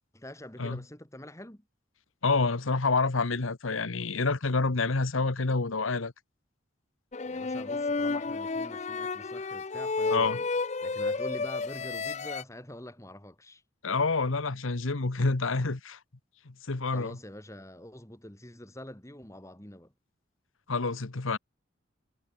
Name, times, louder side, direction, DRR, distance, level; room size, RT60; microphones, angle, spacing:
voice 1, 0.1-1.6 7.3-10.4 10.8-13.6 16.9-19.9, left 1 dB, 15° left, 2.3 m, -45 dB
voice 2, 2.2-6.1 10.1-10.4 13.8-16.0 16.4-17.2 20.7-21.4, left 3 dB, 85° left, 1.2 m, -28 dB
sound 1, 7.1-12.4, left 3 dB, 35° left, 0.5 m, -31 dB
head